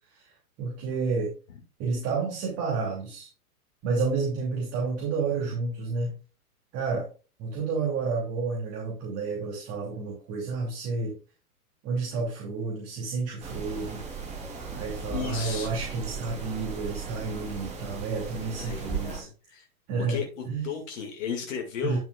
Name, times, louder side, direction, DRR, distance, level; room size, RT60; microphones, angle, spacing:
voice 1, 0.6-1.3 1.8-3.3 3.8-6.1 6.7-7.1 7.4-11.1 11.8-14.0 14.7-19.3 19.9-20.7 21.8-22.0, right 4 dB, 30° right, -2 dB, 2.8 m, -30 dB
sound 1, 13.4-19.2, right 5 dB, 15° right, 2.9 m, -37 dB
voice 2, 15.1-15.8 18.4-19.7 20.1-22.0, left 7 dB, 60° left, 2 dB, 2.2 m, -35 dB
10.5 x 7.1 x 2.4 m, 0.35 s
hypercardioid pair, 115°, 45 cm